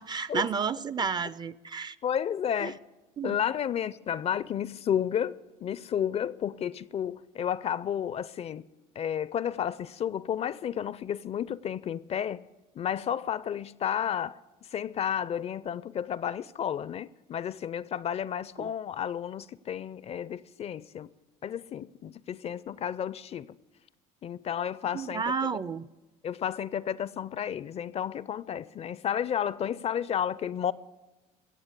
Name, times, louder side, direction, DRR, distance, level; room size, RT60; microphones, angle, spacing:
voice 1, 0.0-2.0 2.6-2.7 3.2-3.4 18.6-18.7 24.9-25.9, right 6 dB, 25° right, 0.4 m, -31 dB
voice 2, 2.0-2.8 3.2-8.7 9.0-12.5 12.7-21.1 21.4-23.6 24.2-25.6 26.2-30.7, left 9 dB, 35° left, 0.4 m, -32 dB
16.0 x 7.1 x 8.3 m
supercardioid pair, 95°, 18 cm